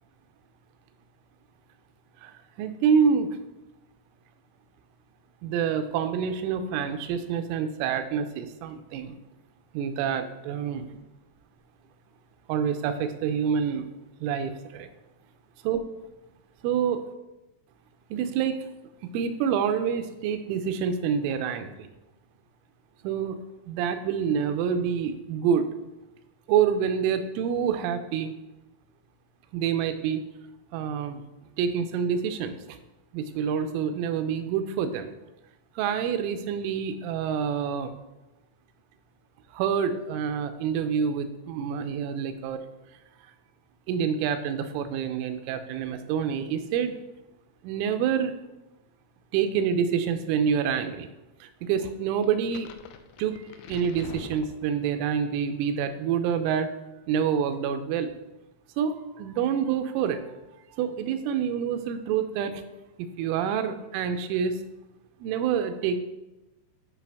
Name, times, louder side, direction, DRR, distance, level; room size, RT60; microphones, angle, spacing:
voice 1, 2.6-3.3 5.4-9.2 9.7-10.9 12.5-13.9 14.2-14.9 15.7-15.8 16.6-17.0 18.1-18.6 19.0-21.9 23.0-23.4 23.7-25.7 26.5-28.4 29.5-30.3 30.7-31.2 31.6-32.5 33.1-35.1 35.8-37.9 39.5-42.6 43.9-46.9 47.6-48.3 49.3-51.1 51.4-52.7 53.2-56.7 57.1-58.1 58.8-60.2 60.8-62.6 63.2-64.6 65.2-66.0, right 7 dB, 90° right, 8 dB, 3.2 m, -27 dB
sound 1, 52.2-55.1, left 7 dB, 80° left, 2.7 m, -44 dB
10.5 x 5.5 x 3.5 m, 1.0 s
omnidirectional pair, 5.5 m